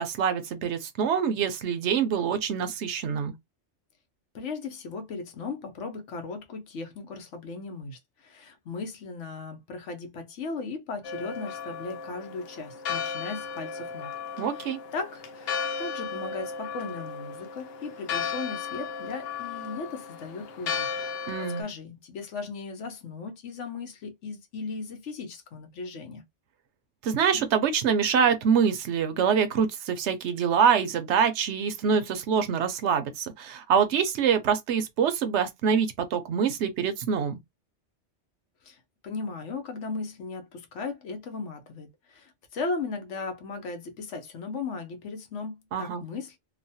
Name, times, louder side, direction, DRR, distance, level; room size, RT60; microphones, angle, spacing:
voice 1, 0.0-3.3 14.4-14.8 21.3-21.6 27.0-37.4 45.7-46.0, right 7 dB, 75° right, 0.9 m, -25 dB
voice 2, 4.3-14.1 14.5-20.9 21.4-26.2 38.6-46.4, left 4 dB, 80° left, 1.1 m, -37 dB
Church bell, 11.0-21.6, left 6 dB, 65° left, 0.8 m, -35 dB
3.0 x 2.1 x 2.6 m
omnidirectional pair, 1.2 m